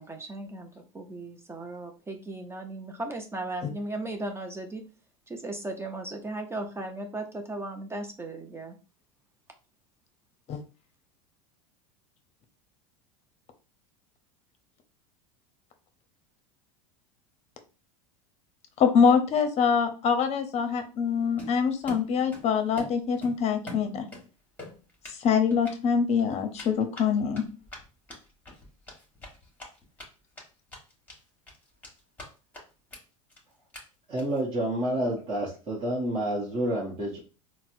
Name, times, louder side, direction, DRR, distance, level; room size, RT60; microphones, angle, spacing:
voice 1, 0.0-4.8 5.3-8.8, right 2 dB, 15° right, 4 dB, 0.5 m, -36 dB
voice 2, 18.8-24.0 25.2-27.4, left 6 dB, 40° left, 7 dB, 0.7 m, -24 dB
Run, 21.4-22.5 22.8-24.2 24.6-25.2 25.5-25.7 26.5-30.0 30.4-30.5 30.7-31.2 31.5-32.3 32.5-32.6 32.9-33.0 33.3-33.4 33.7-33.8 34.2-34.4, left 1 dB, 10° left, 1.4 m, -43 dB
voice 3, 34.1-37.2, right 1 dB, 30° right, -5 dB, 0.9 m, -29 dB
4.0 x 2.1 x 2.5 m, 0.34 s
hypercardioid pair, 100°, 17 cm